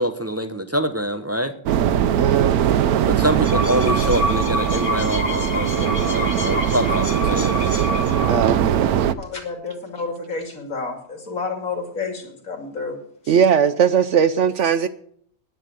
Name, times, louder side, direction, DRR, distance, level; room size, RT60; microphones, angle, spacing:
voice 1, 0.0-1.5 3.1-7.6, equal, 20° right, 0.4 m, -25 dB
sound 1, 1.7-9.1, right 10 dB, 80° right, 1.1 m, -21 dB
voice 2, 2.2-2.6 8.2-9.1 13.3-14.9, right 7 dB, 65° right, 0.8 m, -19 dB
sound 2, 3.2-8.6, left 1 dB, 35° left, 1.8 m, -28 dB
voice 3, 9.2-13.0 13.2-13.3, left 4 dB, 65° left, 3.1 m, -30 dB
10.0 x 9.3 x 7.7 m
omnidirectional pair, 1.5 m